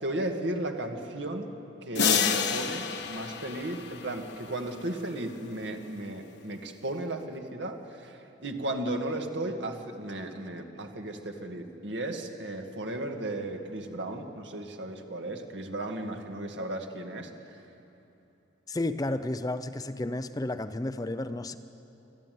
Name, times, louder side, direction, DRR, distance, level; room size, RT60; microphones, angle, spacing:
voice 1, 0.0-1.5 1.8-17.6, right 1 dB, 70° right, 4 dB, 2.0 m, -35 dB
sound 1, 1.9-4.7, left 7 dB, 65° left, 1.3 m, -29 dB
voice 2, 18.7-21.6, left 2 dB, 20° left, 11 dB, 0.5 m, -32 dB
25.0 x 14.5 x 9.3 m, 3.0 s
head